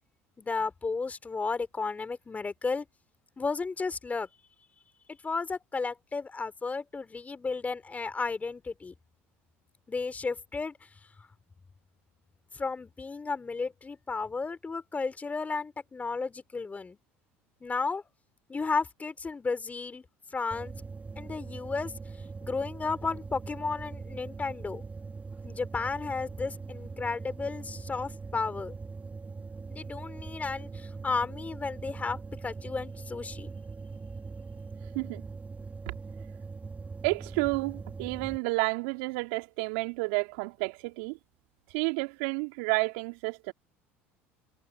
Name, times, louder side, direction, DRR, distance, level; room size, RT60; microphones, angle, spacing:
voice 1, 0.4-2.9 3.4-4.3 5.1-8.9 9.9-10.8 11.2-11.3 12.5-17.0 17.6-18.0 18.5-20.0 20.3-20.7 21.2-21.9 22.4-24.8 25.4-28.7 29.7-32.2 32.4-33.5, left 4 dB, 20° left, 4.0 m, -33 dB
sound 1, 20.5-38.4, right 4 dB, 25° right, 4.3 m, -42 dB
voice 2, 37.0-41.2 41.7-43.5, right 29 dB, 70° right, 3.2 m, -30 dB
hypercardioid pair, 70°, 7 cm